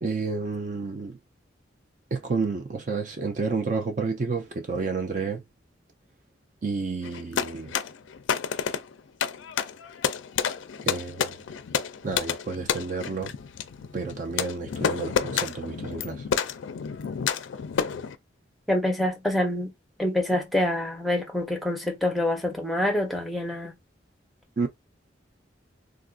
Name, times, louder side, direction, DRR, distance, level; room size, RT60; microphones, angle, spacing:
voice 1, 0.0-1.2 2.1-5.4 6.6-7.7 10.8-11.3 12.0-13.3 13.9-16.2 24.6-24.7, right 4 dB, 45° right, 0.4 m, -30 dB
sound 1, 7.0-18.2, left 7 dB, 90° left, 0.4 m, -30 dB
voice 2, 18.7-19.7 20.0-23.7, left 1 dB, ahead, 0.7 m, -26 dB
3.7 x 2.5 x 2.4 m
head